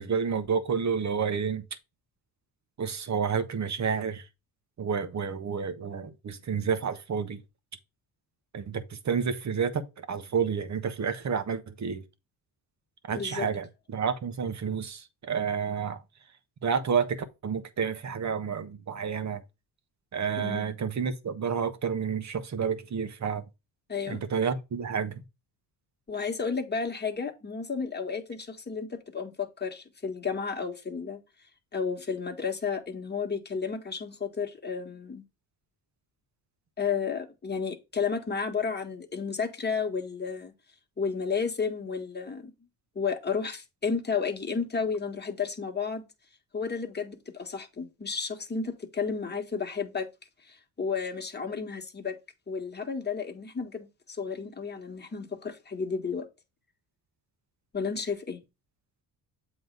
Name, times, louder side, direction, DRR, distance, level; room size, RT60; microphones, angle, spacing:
voice 1, 0.0-1.6 2.8-4.3 4.8-7.4 8.5-12.0 13.1-16.0 16.6-19.4 20.1-23.4 24.1-25.2, right 6 dB, 45° right, 1.1 m, -30 dB
voice 2, 13.1-13.5 20.4-20.7 23.9-24.2 26.1-31.2 31.7-35.2 36.8-40.5 41.0-42.5 42.9-46.1 46.5-50.1 50.5-52.2 52.5-56.3 57.7-58.4, left 5 dB, 25° left, 1.5 m, -32 dB
7.8 x 3.2 x 5.2 m
cardioid pair, 90°, 40 cm